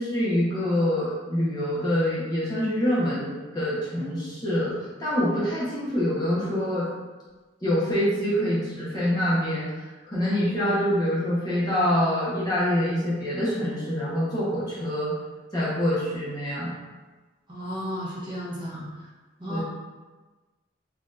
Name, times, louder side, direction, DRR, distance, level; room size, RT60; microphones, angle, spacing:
voice 1, 0.0-6.9 7.6-9.7 10.1-15.1 15.5-16.7 19.5-19.6, equal, 20° left, -9 dB, 1.0 m, -25 dB
voice 2, 17.5-18.8 19.4-19.6, equal, 25° right, -9 dB, 0.9 m, -33 dB
4.1 x 2.8 x 2.5 m, 1.3 s
head